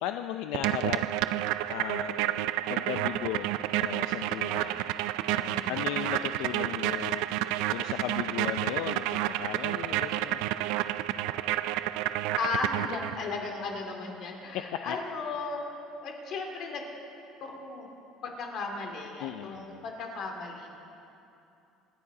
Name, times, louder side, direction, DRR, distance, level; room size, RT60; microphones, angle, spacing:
voice 1, 0.0-1.0 1.7-3.5 3.7-4.9 5.3-10.5 14.5-15.0 19.2-19.8, left 12 dB, 75° left, 7 dB, 0.5 m, -36 dB
sound 1, 0.5-13.3, right 14 dB, 85° right, 0.4 m, -30 dB
voice 2, 5.5-5.9 11.1-11.5 12.3-15.6 16.0-16.9 17.5-17.9 18.2-20.7, left 4 dB, 50° left, 2 dB, 2.4 m, -36 dB
26.0 x 9.9 x 4.9 m, 2.7 s
cardioid pair, 165°, 0 cm